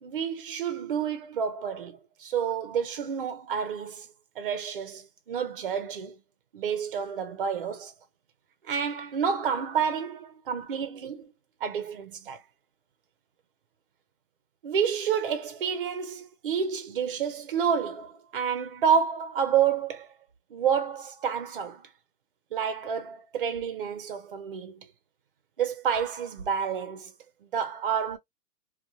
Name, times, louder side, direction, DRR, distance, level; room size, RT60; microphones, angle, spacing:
voice 1, 0.0-4.1 4.4-6.2 6.5-7.9 8.6-11.3 11.6-12.4 14.6-20.1 20.5-21.9 22.5-24.9 25.6-27.1 27.5-28.2, right 7 dB, 35° right, 0.5 m, -29 dB
2.7 x 2.2 x 2.6 m
hypercardioid pair, 140°, 50 cm